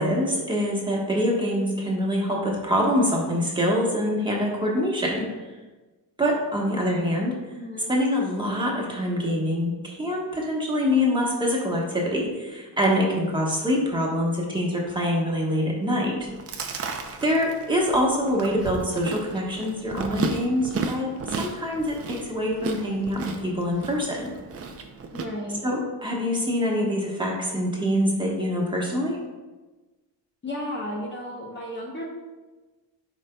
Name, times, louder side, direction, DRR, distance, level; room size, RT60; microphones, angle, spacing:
voice 1, 0.0-5.3 6.2-7.4 7.9-16.3 17.2-24.3 25.6-29.2, equal, 10° right, -3 dB, 1.3 m, -25 dB
voice 2, 7.4-7.9 25.1-25.6 30.4-32.0, left 1 dB, 25° left, -2 dB, 0.9 m, -33 dB
Chewing mastication, 16.2-25.2, right 4 dB, 35° right, 0.6 m, -34 dB
11.5 x 5.1 x 2.3 m, 1.2 s
cardioid pair, 150°, 41 cm